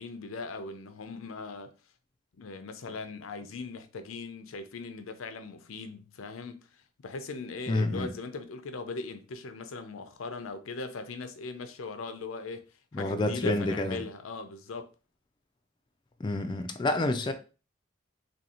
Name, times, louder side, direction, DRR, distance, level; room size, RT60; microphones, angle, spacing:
voice 1, 0.0-1.7 2.4-12.6 12.9-14.9, left 3 dB, 80° left, 0.5 m, -39 dB
voice 2, 7.7-8.1 12.9-14.0 16.2-17.3, left 2 dB, 20° left, 0.3 m, -28 dB
2.8 x 2.7 x 4.1 m
head